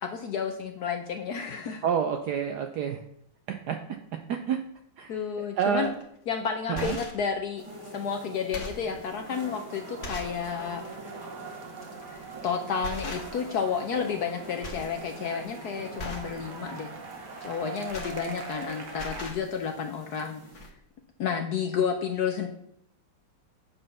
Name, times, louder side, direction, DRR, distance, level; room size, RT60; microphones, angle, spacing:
voice 1, 0.0-1.8 5.1-5.9 6.3-7.6 7.9-10.8 12.1-16.9 17.4-20.4 21.2-22.5, left 6 dB, 70° left, 4 dB, 1.0 m, -31 dB
voice 2, 1.8-3.0 3.5-3.8 4.3-4.6 5.0-5.9 6.7-7.0, right 7 dB, 75° right, 6 dB, 0.9 m, -29 dB
sound 1, 5.8-6.0 6.6-7.3 7.9-8.0 8.4-8.9 9.5-9.6 10.0-10.4 10.8-11.0 12.2-12.4 12.8-13.6 13.9-14.3 14.6-14.9 15.3-15.5 16.0-16.4 17.5-18.6 18.9-19.4 20.2-20.3 20.5-20.7, left 2 dB, 45° left, 1.2 m, -39 dB
sound 2, 7.6-20.7, right 1 dB, 20° right, 0.8 m, -46 dB
sound 3, 9.2-19.3, right 5 dB, 60° right, 1.6 m, -43 dB
8.5 x 4.1 x 5.5 m, 0.72 s
omnidirectional pair, 2.3 m